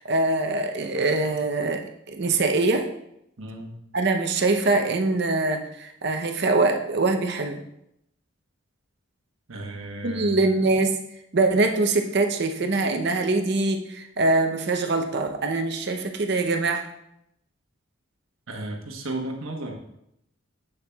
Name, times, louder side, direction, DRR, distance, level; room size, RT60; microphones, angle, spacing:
voice 1, 0.0-1.8 2.1-2.8 3.9-7.6 10.0-10.9 11.3-16.8, right 3 dB, 50° right, 4 dB, 0.7 m, -23 dB
voice 2, 3.4-3.7 9.5-10.5 18.5-19.7, right 2 dB, 70° right, 1 dB, 1.1 m, -34 dB
8.1 x 6.9 x 2.3 m, 0.78 s
head